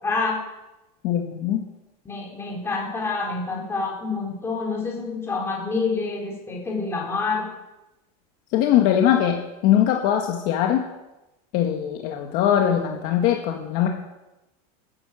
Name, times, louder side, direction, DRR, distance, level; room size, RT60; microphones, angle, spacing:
voice 1, 0.0-0.4 2.0-7.5, left 4 dB, 15° left, -1 dB, 4.2 m, -27 dB
voice 2, 1.0-1.6 8.5-10.9 11.5-13.9, left 10 dB, 45° left, 3 dB, 1.6 m, -21 dB
13.5 x 10.5 x 7.8 m, 0.99 s
supercardioid pair, 165°, 19 cm